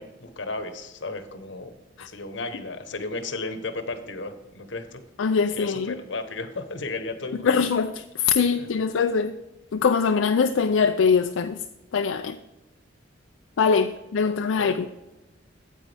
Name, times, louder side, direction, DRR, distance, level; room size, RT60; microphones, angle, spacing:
voice 1, 0.0-1.7 2.0-5.0 5.5-7.7 8.4-8.7 14.2-14.9, left 3 dB, 65° left, 9 dB, 1.0 m, -34 dB
voice 2, 5.2-6.0 7.4-9.3 9.7-11.6 11.9-12.4 13.6-14.9, left 5 dB, 80° left, 7 dB, 0.4 m, -22 dB
9.3 x 8.4 x 3.4 m, 1.0 s
head